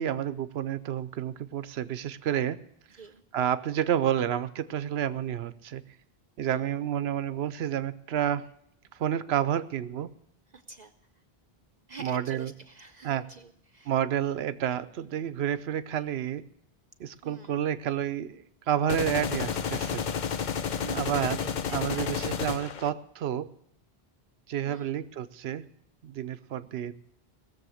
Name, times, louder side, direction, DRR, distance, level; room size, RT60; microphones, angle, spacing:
voice 1, 0.0-2.6 3.3-5.8 6.4-8.5 9.0-10.1 12.0-12.5 13.0-13.2 13.9-16.4 17.0-20.0 20.9-21.4 21.7-23.5 24.5-25.6 26.0-26.9, right 10 dB, 85° right, 14 dB, 0.9 m, -30 dB
voice 2, 10.5-10.9 11.9-13.9 17.2-17.6 20.7-22.2 24.6-25.0, right 5 dB, 50° right, 9 dB, 0.7 m, -46 dB
sound 1, 18.9-22.9, left 7 dB, 55° left, 0.7 m, -31 dB
19.5 x 7.1 x 6.3 m, 0.71 s
omnidirectional pair, 1.0 m